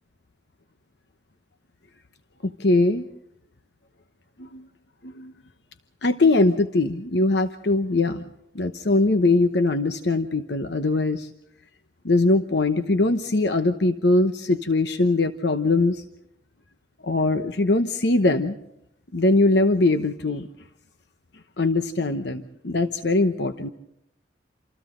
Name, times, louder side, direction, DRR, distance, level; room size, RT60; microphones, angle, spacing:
voice 1, 2.4-3.0 4.4-4.6 5.0-5.3 6.0-8.3 8.5-11.3 12.0-16.0 17.0-18.6 19.1-20.5 21.6-23.7, left 2 dB, 60° left, 9 dB, 0.9 m, -21 dB
28.0 x 27.5 x 3.9 m, 0.81 s
head